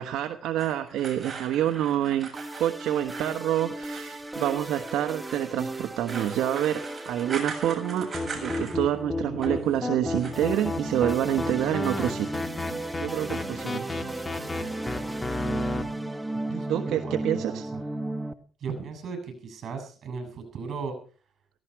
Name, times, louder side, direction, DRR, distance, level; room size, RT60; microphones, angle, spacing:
voice 1, 0.0-2.3 2.6-8.1 8.3-12.3 13.0-13.9 16.7-17.6, right 11 dB, 85° right, 7 dB, 1.2 m, -27 dB
sound 1, 0.6-9.0 9.2-9.7 10.1-10.6, right 5 dB, 40° right, 7.2 m, -40 dB
sound 2, 2.3-18.3, right 1 dB, 15° right, 1.3 m, -35 dB
sound 3, 8.1-15.8, left 2 dB, 25° left, 2.5 m, -32 dB
voice 2, 16.5-17.8 18.6-21.0, right 5 dB, 60° right, 7 dB, 8.0 m, -37 dB
17.5 x 16.0 x 4.7 m, 0.41 s
cardioid pair, 90°, 0 cm